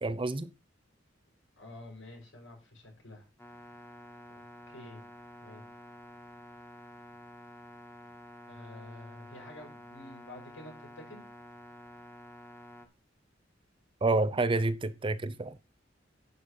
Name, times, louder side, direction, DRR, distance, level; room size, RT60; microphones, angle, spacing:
voice 1, 0.0-0.5 14.0-15.6, right 2 dB, 25° right, 0.6 m, -28 dB
voice 2, 1.6-3.3 4.7-5.0 5.4-5.6 8.5-11.2, left 1 dB, 80° left, 5.9 m, -49 dB
sound 1, 3.4-12.9, left 1 dB, 10° left, 1.3 m, -50 dB
11.0 x 5.0 x 5.6 m
head